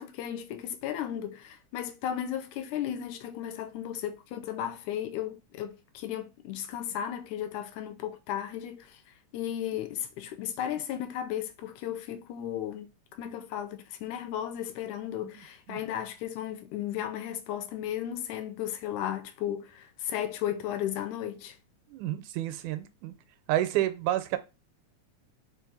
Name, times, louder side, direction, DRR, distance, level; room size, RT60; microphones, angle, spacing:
voice 1, 0.0-9.0 9.3-21.6, left 10 dB, 90° left, 2.0 m, -35 dB
voice 2, 21.9-23.1 23.5-24.4, right 13 dB, 85° right, 2.0 m, -29 dB
4.7 x 2.5 x 3.9 m
omnidirectional pair, 3.4 m